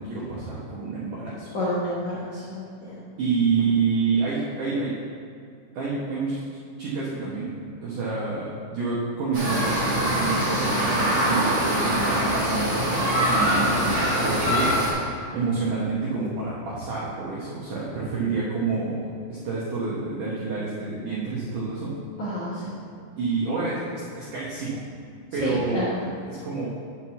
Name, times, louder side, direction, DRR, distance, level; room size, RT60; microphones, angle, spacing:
voice 1, 0.0-1.5 3.2-4.9 5.7-6.4 6.8-7.5 7.8-19.0 19.5-21.9 23.2-24.8 25.3-25.9 26.3-26.8, right 4 dB, 75° right, -7 dB, 1.9 m, -28 dB
voice 2, 1.5-2.9 22.2-22.8 25.3-26.1, left 1 dB, 70° left, -9 dB, 1.8 m, -30 dB
sound 1, 9.3-14.9, equal, 40° right, 1.6 m, -23 dB
7.3 x 4.7 x 7.1 m, 2.3 s
omnidirectional pair, 5.4 m